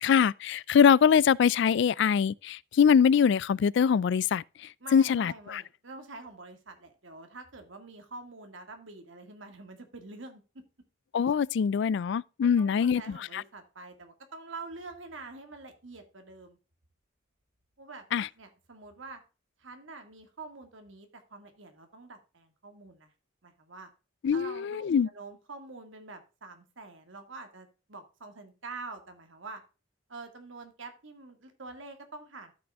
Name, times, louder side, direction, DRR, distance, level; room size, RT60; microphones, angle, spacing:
voice 1, 0.0-4.4 4.9-5.6 11.1-13.4 18.1-18.3 24.2-25.1, left 7 dB, 60° left, 0.3 m, -23 dB
voice 2, 4.8-10.4 12.6-16.6 17.8-18.1 18.4-19.2 19.6-23.1 23.4-23.9 24.3-24.8 25.1-29.6 30.1-32.5, right 3 dB, 75° right, 1.9 m, -46 dB
13.5 x 6.1 x 2.4 m
head